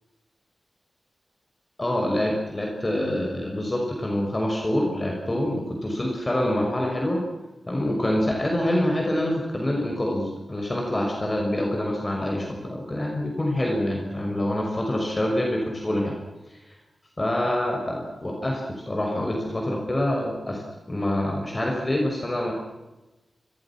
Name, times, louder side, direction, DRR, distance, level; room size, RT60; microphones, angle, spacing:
voice 1, 1.8-7.2 7.7-16.1 16.5-16.6 17.2-20.6 20.9-22.5, left 1 dB, 20° left, 0 dB, 6.1 m, -26 dB
29.5 x 25.5 x 6.2 m, 1.1 s
wide cardioid pair, 140°, 0 cm